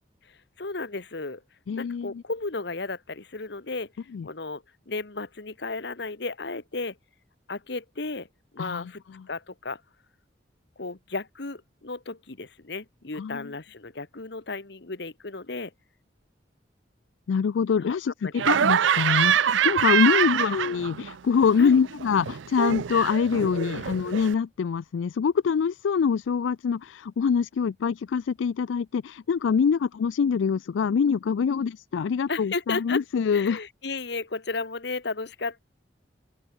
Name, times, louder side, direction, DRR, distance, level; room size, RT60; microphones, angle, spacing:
voice 1, 0.6-1.4 1.8-3.9 4.2-7.0 7.5-8.3 8.5-9.0 9.3-9.8 10.8-15.7 17.8-18.0 18.2-18.4 20.1-20.4 21.6-21.8 23.4-23.8 31.5-31.7 32.3-33.0 33.3-35.6, left 3 dB, 65° left, 1.3 m, -34 dB
voice 2, 1.7-2.2 4.1-4.3 8.6-8.9 13.2-13.5 17.3-33.6, left 6 dB, 85° left, 0.4 m, -25 dB
Laughter, 18.4-21.1 21.4-24.3, right 8 dB, 80° right, 0.5 m, -25 dB
open air
head